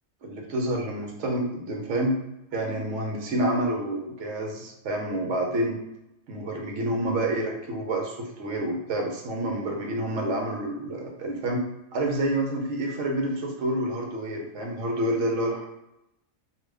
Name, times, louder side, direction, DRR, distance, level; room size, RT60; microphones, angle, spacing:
voice 1, 0.2-2.2 2.5-5.8 6.3-11.6 11.9-15.7, right 1 dB, 65° right, 1 dB, 1.0 m, -28 dB
2.9 x 2.3 x 3.3 m, 0.88 s
omnidirectional pair, 1.4 m